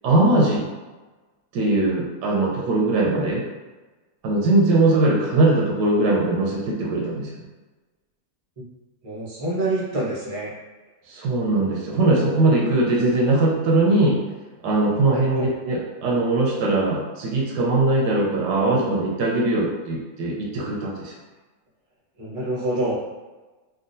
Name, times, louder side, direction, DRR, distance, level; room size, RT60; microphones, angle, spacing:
voice 1, 0.0-0.6 1.5-3.4 4.2-7.3 11.1-14.2 14.6-21.1, right 2 dB, 85° right, -3 dB, 1.4 m, -20 dB
voice 2, 9.0-10.5 15.1-15.5 22.2-23.0, right 1 dB, 30° right, -5 dB, 0.6 m, -26 dB
3.7 x 2.3 x 2.6 m, 1.2 s
omnidirectional pair, 1.8 m